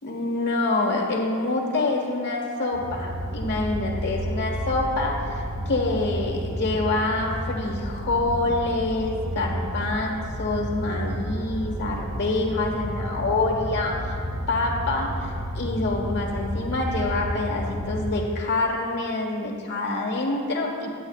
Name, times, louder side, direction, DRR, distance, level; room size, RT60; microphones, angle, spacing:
voice 1, 0.0-14.2 14.5-20.9, left 2 dB, 50° left, -1 dB, 1.3 m, -26 dB
sound 1, 2.7-18.0, equal, 75° right, 1.5 m, -31 dB
11.0 x 8.5 x 2.4 m, 2.2 s
head